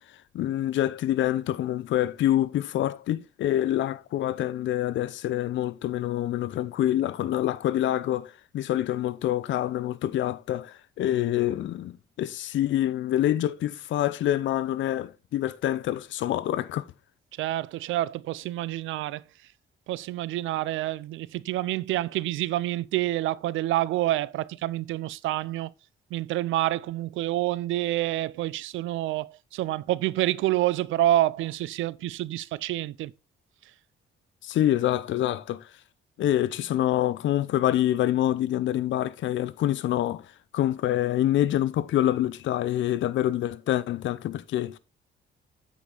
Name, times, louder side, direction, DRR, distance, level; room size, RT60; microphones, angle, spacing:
voice 1, 0.3-16.8 34.4-35.6 36.2-40.2 40.5-44.8, left 12 dB, 75° left, 0.6 m, -26 dB
voice 2, 17.4-19.2 19.9-25.7 26.1-33.1, right 15 dB, 80° right, 0.5 m, -28 dB
8.4 x 5.0 x 3.9 m
cardioid pair, 90°, 20 cm